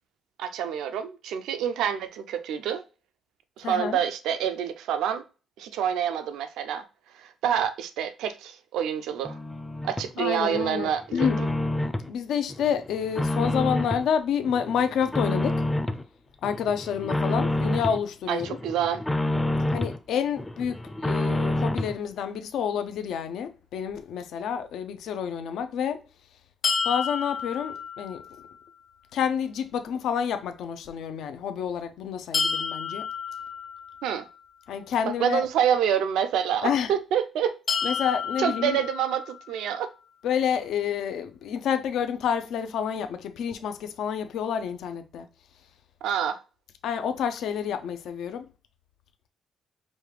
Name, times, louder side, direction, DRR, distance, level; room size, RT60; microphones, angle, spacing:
voice 1, 0.4-2.8 3.6-5.2 5.6-6.8 7.2-9.4 9.8-11.3 18.3-19.0 34.0-34.3 35.1-37.6 38.4-39.9 46.0-46.4, right 9 dB, 85° right, 0.5 m, -27 dB
voice 2, 3.6-4.0 10.2-11.4 12.1-15.6 16.4-18.6 19.7-26.0 26.8-28.2 29.1-33.0 34.7-35.4 36.6-36.9 37.8-38.8 40.2-45.3 46.8-48.5, left 8 dB, 75° left, 0.5 m, -29 dB
sound 1, 9.2-10.1 10.5-12.1 12.5-14.1 14.5-16.0 16.4-18.0 18.4-20.0 20.4-22.0, left 1 dB, 10° left, 0.4 m, -28 dB
sound 2, 26.6-28.6 32.3-34.4 37.7-39.7, left 5 dB, 55° left, 1.2 m, -31 dB
5.2 x 2.3 x 3.3 m
cardioid pair, 90°, 0 cm